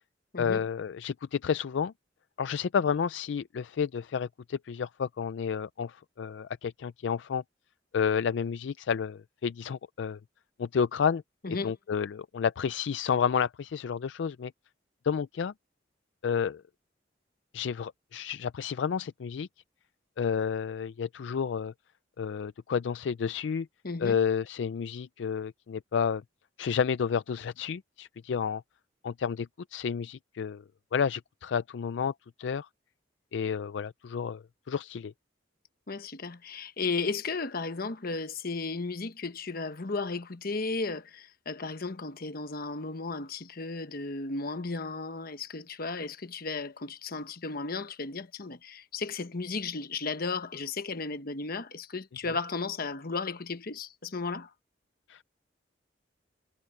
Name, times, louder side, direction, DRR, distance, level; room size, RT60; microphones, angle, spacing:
voice 1, 0.4-1.9 2.4-7.4 7.9-10.2 10.6-11.2 11.6-14.5 15.0-15.5 16.2-16.6 17.5-19.5 20.2-21.7 22.2-23.7 24.0-26.2 26.6-28.6 29.0-30.6 30.9-32.1 32.4-32.7 33.3-35.1 55.1-55.2, left 6 dB, 75° left, 0.4 m, -30 dB
voice 2, 23.8-24.2 35.9-54.5, left 4 dB, 55° left, 1.2 m, -34 dB
head